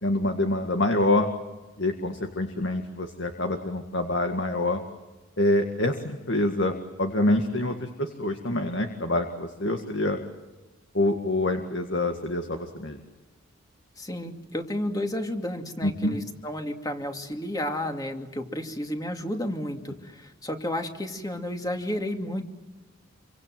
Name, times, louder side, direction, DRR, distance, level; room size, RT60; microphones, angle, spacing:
voice 1, 0.0-1.3 1.8-4.8 5.4-10.2 10.9-13.0 15.8-16.2, left 1 dB, 55° left, 5 dB, 1.9 m, -26 dB
voice 2, 14.0-22.4, left 1 dB, 20° left, 4 dB, 2.5 m, -32 dB
28.0 x 25.0 x 7.7 m, 1.2 s
head